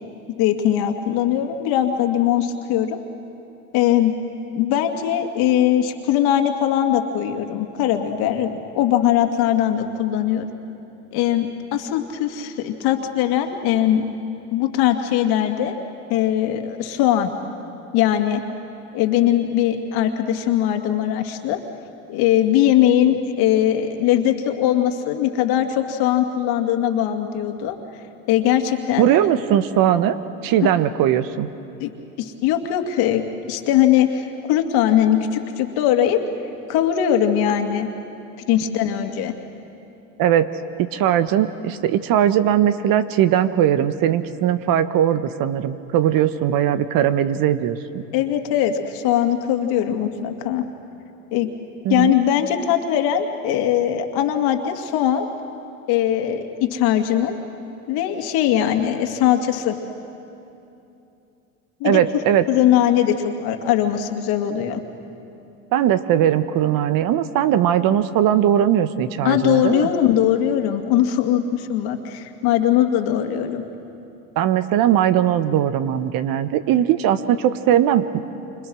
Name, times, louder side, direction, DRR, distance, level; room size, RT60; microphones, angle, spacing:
voice 1, 0.4-3.0 3.7-4.2 4.5-10.5 11.1-14.1 14.5-15.7 16.1-17.3 17.9-18.4 18.9-21.6 22.1-27.8 28.3-29.1 31.8-31.9 32.2-33.2 33.5-36.2 36.7-37.9 38.5-39.3 48.1-50.6 51.3-51.5 51.9-55.3 55.9-57.4 57.9-59.8 61.8-62.0 62.5-64.8 69.2-73.6, left 11 dB, 65° left, 5 dB, 2.4 m, -20 dB
voice 2, 29.0-30.2 30.4-31.5 40.2-40.5 40.8-48.0 51.8-52.1 61.8-62.5 65.7-69.9 74.4-78.0, right 10 dB, 55° right, 12 dB, 1.3 m, -19 dB
29.0 x 26.0 x 6.4 m, 2.8 s
hypercardioid pair, 85°, 40 cm